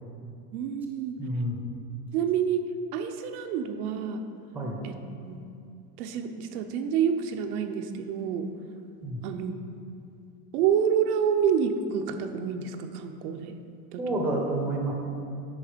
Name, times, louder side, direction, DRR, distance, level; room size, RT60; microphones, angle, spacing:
voice 1, 0.5-1.2 2.1-2.6 2.9-4.2 4.8-5.0 5.2-5.4 6.0-8.5 9.2-9.8 10.5-13.6 13.9-14.0, right 7 dB, 75° right, 6 dB, 0.8 m, -28 dB
voice 2, 1.2-1.6 4.5-4.8 9.0-9.2 14.0-14.9, right 1 dB, 5° right, 0 dB, 0.7 m, -29 dB
9.0 x 5.3 x 5.0 m, 2.5 s
supercardioid pair, 160°, 45 cm